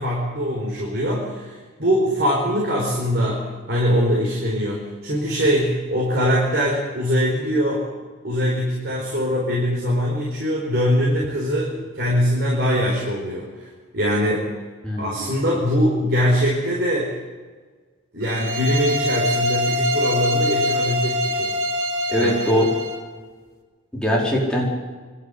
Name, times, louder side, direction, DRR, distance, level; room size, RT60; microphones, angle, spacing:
voice 1, 0.0-7.9 8.2-13.7 13.9-14.5 15.0-17.1 18.1-21.5 22.2-22.4, equal, 50° right, -3 dB, 4.7 m, -22 dB
voice 2, 14.8-15.2 22.1-22.7 23.9-24.6, equal, 5° left, -4 dB, 4.9 m, -21 dB
sound 1, 18.2-23.0, left 1 dB, 70° right, 3.3 m, -24 dB
25.5 x 12.5 x 8.7 m, 1.4 s
head